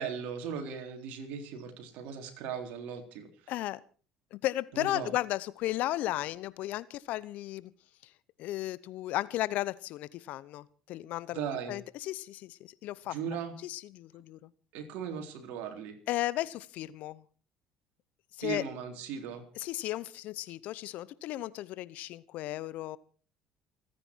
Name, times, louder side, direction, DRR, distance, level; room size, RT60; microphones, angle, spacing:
voice 1, 0.0-3.5 4.7-5.1 11.3-11.8 13.1-13.5 14.7-16.0 18.4-19.5, right 7 dB, 70° right, 5 dB, 3.7 m, -38 dB
voice 2, 3.5-3.8 4.3-7.7 8.0-8.1 8.4-13.2 13.6-14.5 16.1-17.2 18.4-18.6 19.5-23.0, left 15 dB, 65° left, 19 dB, 0.8 m, -35 dB
28.5 x 9.9 x 4.6 m, 0.40 s
hypercardioid pair, 70°, 3 cm